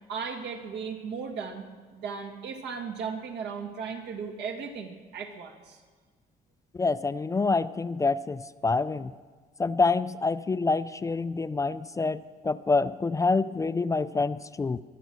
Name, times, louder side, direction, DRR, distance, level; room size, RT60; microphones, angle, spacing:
voice 1, 0.1-1.6 1.9-5.8, right 6 dB, 80° right, 2 dB, 2.3 m, -36 dB
voice 2, 6.7-9.1 9.6-14.8, left 3 dB, 20° left, 13 dB, 0.4 m, -27 dB
23.5 x 9.3 x 6.4 m, 1.5 s
cardioid pair, 110°, 17 cm